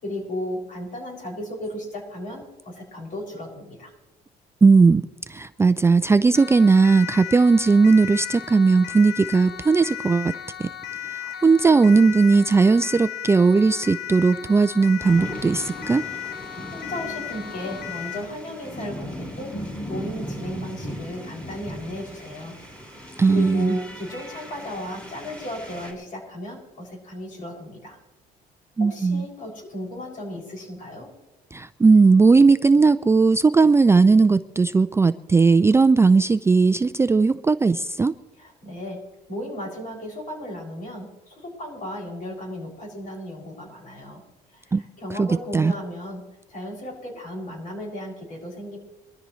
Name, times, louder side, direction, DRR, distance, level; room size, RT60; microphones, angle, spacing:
voice 1, 0.0-3.9 16.4-19.5 19.9-22.5 23.3-28.0 28.8-31.1 38.4-39.0 39.3-44.2 44.5-46.2 46.5-48.8, left 1 dB, 50° left, 0 dB, 6.3 m, -35 dB
voice 2, 4.6-5.0 5.3-10.3 10.6-10.7 11.1-16.0 23.2-23.8 28.8-29.2 31.5-38.1 44.7-44.8 45.2-45.3 45.5-45.7, right 4 dB, 15° right, 11 dB, 0.4 m, -17 dB
Siren, 6.3-18.3, left 10 dB, 70° left, 1.2 m, -36 dB
sound 1, 15.0-25.9, equal, 10° left, 4.6 m, -37 dB
23.0 x 13.0 x 3.1 m, 1.0 s
cardioid pair, 110°, 17 cm